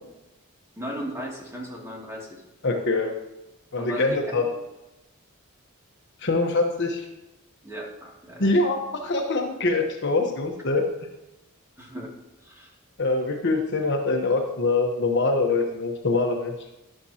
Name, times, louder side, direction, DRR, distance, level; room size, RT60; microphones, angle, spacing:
voice 1, 0.8-2.4 3.8-4.5 7.6-8.5 11.8-12.1 12.4-12.7, equal, 10° right, -3 dB, 2.6 m, -36 dB
voice 2, 2.6-3.1 3.7-4.5 6.2-7.0 8.4-10.8 13.0-16.5, left 3 dB, 55° left, 3 dB, 1.1 m, -24 dB
12.0 x 11.0 x 2.9 m, 0.94 s
head